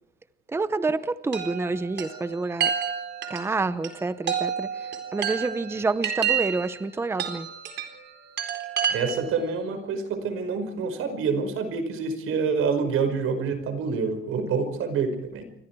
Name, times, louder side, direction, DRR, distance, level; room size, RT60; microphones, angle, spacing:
voice 1, 0.5-2.7 3.3-7.5, right 3 dB, 10° right, 13 dB, 0.8 m, -28 dB
Chime, 1.3-9.4, right 8 dB, 55° right, 4.1 m, -30 dB
voice 2, 8.9-15.4, right 5 dB, 90° right, 8 dB, 5.2 m, -27 dB
28.0 x 25.0 x 4.7 m, 0.74 s
cardioid pair, 180°, 21 cm